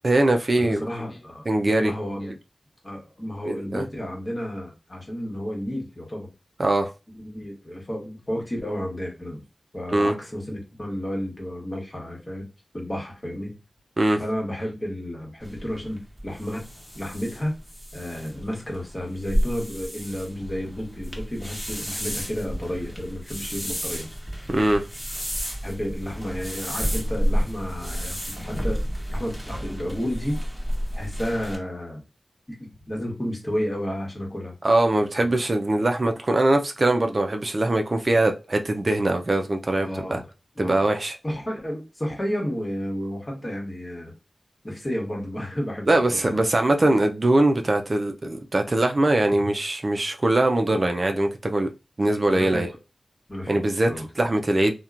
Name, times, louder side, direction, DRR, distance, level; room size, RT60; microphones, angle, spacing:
voice 1, 0.0-0.9 1.5-1.9 3.5-3.8 6.6-6.9 9.9-10.1 14.0-14.2 24.5-24.8 34.6-40.2 40.6-41.2 45.9-51.7 52.0-52.7 53.5-54.7, right 1 dB, 50° right, 0.4 m, -22 dB
voice 2, 0.6-1.4 1.8-2.3 2.8-6.3 7.2-9.4 9.7-12.5 12.7-13.5 14.2-16.7 16.9-17.5 17.9-24.1 25.6-28.8 29.1-30.4 30.9-32.0 32.5-34.5 35.2-35.3 39.7-40.2 40.6-40.8 41.2-44.1 44.6-46.3 52.3-52.6 53.3-53.6 53.9-54.1, equal, 35° left, 1.1 m, -31 dB
sound 1, 15.4-31.6, equal, ahead, 1.1 m, -31 dB
2.8 x 2.2 x 2.4 m
cardioid pair, 40°, 0 cm